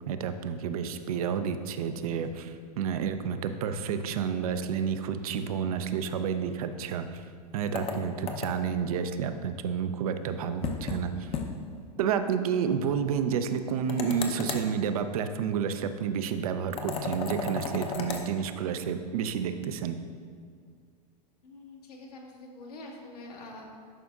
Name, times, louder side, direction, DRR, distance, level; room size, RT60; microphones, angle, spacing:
voice 1, 0.1-7.2 7.5-11.3 12.0-20.0, right 7 dB, 60° right, 9 dB, 0.5 m, -30 dB
sound 1, 7.7-8.8 10.6-11.0 11.3-11.5 11.8-11.9 13.9-14.7 16.7-18.3, left 5 dB, 30° left, 0.7 m, -34 dB
voice 2, 21.4-23.7, left 2 dB, 65° left, -1 dB, 1.5 m, -45 dB
11.0 x 5.1 x 2.4 m, 2.1 s
figure-of-eight pair, 95°, 21 cm